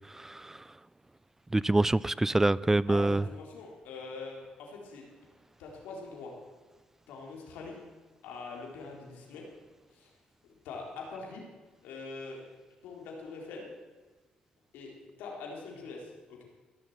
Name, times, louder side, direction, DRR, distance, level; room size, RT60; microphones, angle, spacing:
voice 1, 0.1-0.6 1.5-3.2, right 2 dB, 15° right, 21 dB, 0.3 m, -26 dB
voice 2, 2.9-5.1 5.6-6.3 7.1-7.8 8.2-9.4 9.9-10.1 10.6-11.4 11.8-12.4 12.8-13.7 14.7-16.4, left 4 dB, 85° left, -1 dB, 3.8 m, -43 dB
16.0 x 7.2 x 8.1 m, 1.3 s
cardioid pair, 75°, 3 cm